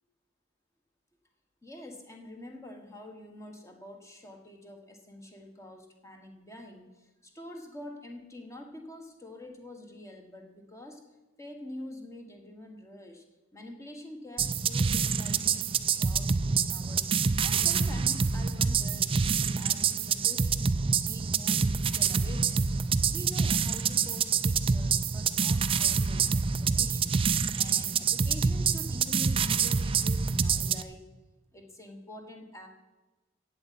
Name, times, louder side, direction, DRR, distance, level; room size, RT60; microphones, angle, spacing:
voice 1, 1.6-11.0 11.4-13.2 13.5-20.7 21.0-22.8 23.1-31.0 31.5-32.7, left 1 dB, 15° left, 3 dB, 1.4 m, -46 dB
sound 1, 14.4-30.8, right 6 dB, 25° right, 0.4 m, -27 dB
8.4 x 7.8 x 8.4 m, 1.1 s
head